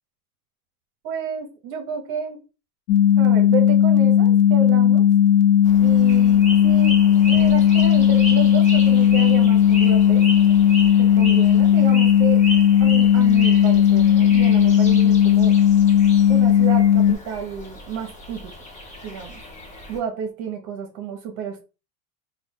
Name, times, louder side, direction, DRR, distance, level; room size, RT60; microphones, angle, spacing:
voice 1, 1.0-2.4 3.2-5.1 5.8-7.0 7.3-10.3 11.0-12.4 12.8-15.6 16.3-18.5 19.0-19.4 19.9-21.6, right 6 dB, 45° right, 0.9 m, -31 dB
sound 1, 2.9-17.1, left 9 dB, 60° left, 0.5 m, -16 dB
sound 2, 5.6-20.0, left 1 dB, 15° left, 0.7 m, -35 dB
3.3 x 2.3 x 3.6 m
supercardioid pair, 140°, 44 cm